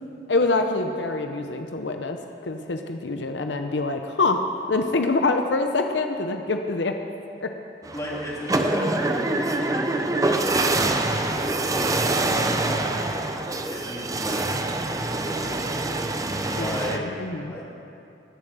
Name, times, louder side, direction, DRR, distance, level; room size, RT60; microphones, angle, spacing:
voice 1, 0.3-2.2 2.4-4.4 4.7-6.9 7.4-7.5 16.6-17.5, left 3 dB, 80° left, 6 dB, 0.7 m, -25 dB
sound 1, 7.8-17.0, right 2 dB, 20° right, 0.6 m, -25 dB
voice 2, 7.9-10.6 11.1-11.4 11.7-11.9 12.2-13.3 13.7-15.7 16.5-17.0 17.5-17.6, equal, 20° left, -5 dB, 2.7 m, -35 dB
20.5 x 7.2 x 6.8 m, 2.7 s
head